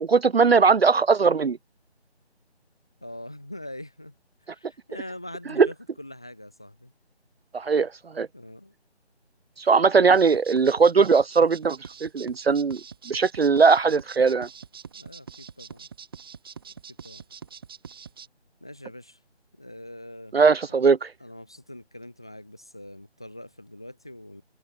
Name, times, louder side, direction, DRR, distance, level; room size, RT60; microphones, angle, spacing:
voice 1, 0.0-1.6 5.6-5.7 7.5-7.9 8.1-8.3 9.6-12.8 13.1-14.5 20.3-21.1, right 5 dB, 65° right, 0.6 m, -19 dB
voice 2, 3.0-4.2 4.4-6.9 8.3-8.7 14.9-15.9 17.0-17.2 18.6-19.2 19.6-20.4 21.2-24.4, left 1 dB, 5° left, 1.1 m, -43 dB
sound 1, 10.1-18.3, right 6 dB, 20° right, 4.8 m, -43 dB
figure-of-eight pair, 175°, 33 cm